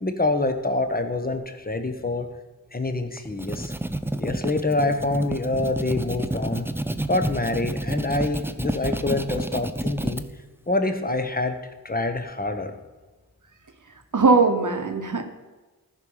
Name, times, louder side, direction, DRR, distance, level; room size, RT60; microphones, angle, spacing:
voice 1, 0.0-2.3 2.7-3.7 4.2-6.7 7.1-10.2 10.7-11.6 11.8-12.8, left 2 dB, 25° left, 7 dB, 1.0 m, -26 dB
sound 1, 3.2-10.2, right 1 dB, 5° right, 0.4 m, -29 dB
voice 2, 14.1-15.2, right 4 dB, 55° right, 6 dB, 1.2 m, -19 dB
14.5 x 4.8 x 5.5 m, 1.2 s
wide cardioid pair, 55°, 38 cm